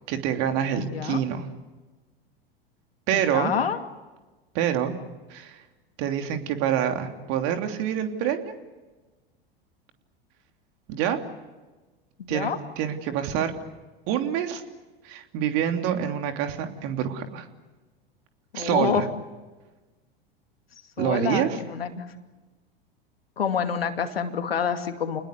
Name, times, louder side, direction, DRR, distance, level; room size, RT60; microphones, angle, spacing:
voice 1, 0.1-1.4 3.1-3.5 4.5-4.9 5.3-5.6 6.0-8.5 10.9-11.2 12.3-12.5 12.8-13.5 14.1-14.6 15.0-17.5 18.5-19.0 21.0-21.6, right 9 dB, 55° right, 6 dB, 3.1 m, -26 dB
voice 2, 0.8-1.2 3.1-3.8 12.2-12.6 18.5-19.1 21.0-22.1 23.4-25.2, left 7 dB, 80° left, 7 dB, 2.5 m, -27 dB
29.5 x 20.5 x 8.3 m, 1.2 s
figure-of-eight pair, 85°, 29 cm